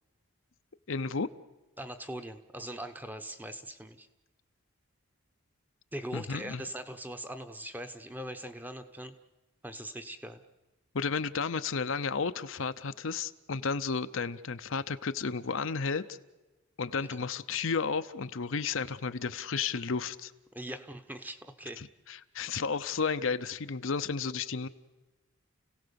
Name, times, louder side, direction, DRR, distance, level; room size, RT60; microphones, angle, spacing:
voice 1, 0.9-1.3 6.1-6.7 10.9-16.2 16.8-20.3 21.8-24.7, left 5 dB, 65° left, 11 dB, 0.7 m, -32 dB
voice 2, 1.8-4.1 5.9-9.1 9.6-10.4 17.1-17.3 20.5-21.8, right 1 dB, 10° right, 8 dB, 0.9 m, -41 dB
29.5 x 17.0 x 7.0 m, 1.2 s
head